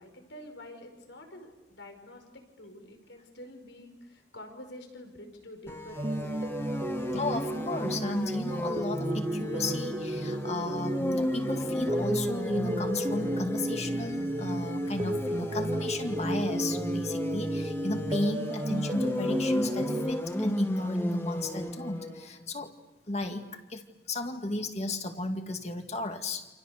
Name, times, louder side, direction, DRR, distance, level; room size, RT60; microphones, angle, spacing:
voice 1, 0.0-6.9, left 1 dB, 80° left, 5 dB, 5.4 m, -48 dB
sound 1, 5.7-22.3, left 1 dB, 15° left, 1.6 m, -35 dB
sound 2, 6.0-20.1, right 1 dB, 25° right, 0.9 m, -33 dB
voice 2, 7.1-22.7 23.1-26.5, left 2 dB, 35° left, 5 dB, 2.1 m, -34 dB
29.0 x 27.5 x 6.7 m, 1.1 s
head